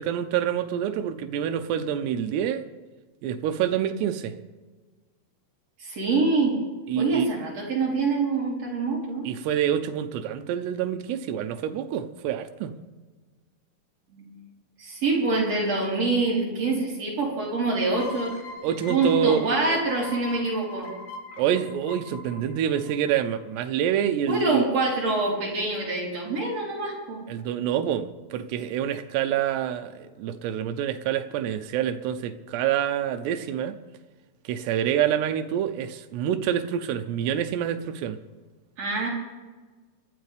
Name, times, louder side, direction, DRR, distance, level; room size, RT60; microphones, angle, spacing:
voice 1, 0.0-2.6 3.2-4.3 6.9-7.3 9.2-12.8 18.6-19.8 21.4-24.6 27.3-33.8 34.4-38.2, right 9 dB, 90° right, 8 dB, 3.0 m, -27 dB
voice 2, 5.8-6.6 7.0-9.3 14.1-14.3 14.8-18.3 18.9-20.9 24.3-27.2 38.8-39.1, right 3 dB, 40° right, -4 dB, 4.7 m, -25 dB
sound 1, 17.9-23.4, left 3 dB, 75° left, 4.2 m, -41 dB
27.5 x 12.0 x 3.4 m, 1.3 s
omnidirectional pair, 4.7 m